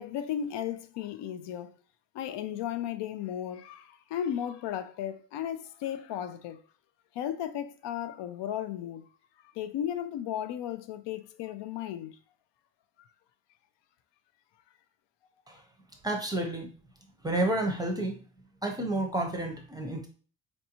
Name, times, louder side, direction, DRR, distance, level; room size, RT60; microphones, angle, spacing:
voice 1, 0.0-1.7 2.1-6.6 7.1-9.1 9.5-12.2 13.0-13.1, left 10 dB, 75° left, 0.5 m, -35 dB
voice 2, 16.0-16.7 17.2-18.2 18.6-20.1, right 1 dB, 10° right, 0.5 m, -30 dB
4.4 x 2.6 x 2.8 m
cardioid pair, 140°, 43 cm